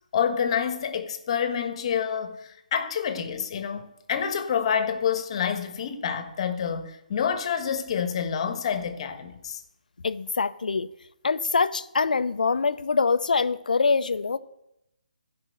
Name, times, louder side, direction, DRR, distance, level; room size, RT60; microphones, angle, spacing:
voice 1, 0.1-9.6, left 7 dB, 45° left, 1.4 m, -28 dB
voice 2, 10.0-10.9 11.2-14.4, left 4 dB, 75° left, 0.7 m, -24 dB
15.5 x 5.3 x 6.6 m
figure-of-eight pair, 150°, 5 cm